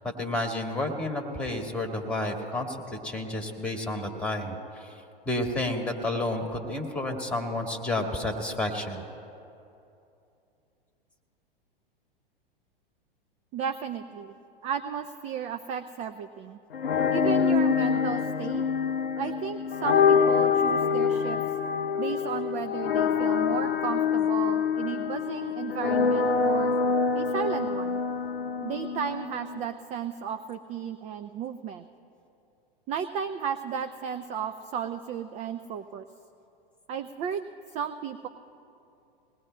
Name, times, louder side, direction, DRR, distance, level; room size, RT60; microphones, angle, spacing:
voice 1, 0.2-4.9 5.2-9.0, left 1 dB, 5° left, 3 dB, 1.6 m, -31 dB
voice 2, 13.5-14.3 14.6-16.6 17.1-18.6 19.2-21.4 22.0-26.7 27.1-28.0 28.6-31.8 32.9-36.0 36.9-38.3, right 7 dB, 25° right, 9 dB, 0.4 m, -34 dB
sound 1, 16.7-29.7, left 6 dB, 75° left, 0.7 m, -25 dB
21.5 x 19.0 x 2.2 m, 2.7 s
hypercardioid pair, 100°, 29 cm